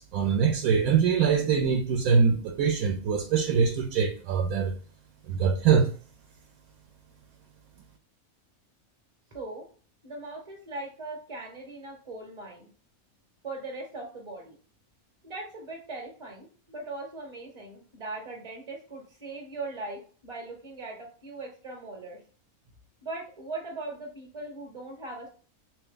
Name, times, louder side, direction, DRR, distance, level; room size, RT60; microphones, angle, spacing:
voice 1, 0.0-4.7 5.3-5.9, right 6 dB, 75° right, 1.0 m, -23 dB
voice 2, 9.3-9.7 10.0-12.7 13.4-14.6 15.2-22.2 23.0-25.3, right 2 dB, 25° right, 0.7 m, -39 dB
3.3 x 2.7 x 3.7 m
omnidirectional pair, 1.6 m